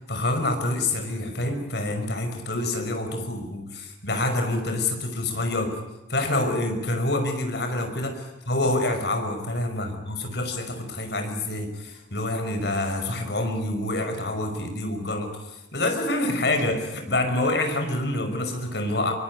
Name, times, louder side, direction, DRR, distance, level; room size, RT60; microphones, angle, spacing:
voice 1, 0.1-5.8 6.1-19.1, left 2 dB, 65° left, 6 dB, 5.6 m, -27 dB
23.5 x 23.5 x 9.8 m, 0.95 s
head